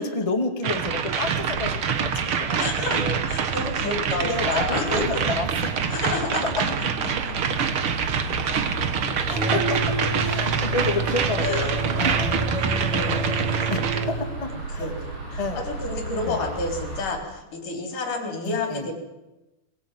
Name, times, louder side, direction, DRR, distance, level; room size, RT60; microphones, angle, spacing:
voice 1, 0.0-3.2 4.2-5.7 9.2-12.5 12.9-13.8 14.4-14.9 15.4-15.6 16.2-16.6 18.4-18.9, left 3 dB, 20° left, 5 dB, 1.0 m, -30 dB
sound 1, 0.6-14.0, right 7 dB, 90° right, 1.1 m, -26 dB
sound 2, 1.2-17.0, right 2 dB, 65° right, 9.3 m, -34 dB
voice 2, 2.6-3.0 3.3-5.2 5.9-6.9 7.2-7.5 11.4-11.7 12.4-14.1 14.8-18.9, left 3 dB, 50° left, 4 dB, 5.3 m, -30 dB
sound 3, 9.3-14.3, right 3 dB, 35° right, 3.8 m, -29 dB
22.0 x 21.0 x 9.2 m, 1.0 s
omnidirectional pair, 4.8 m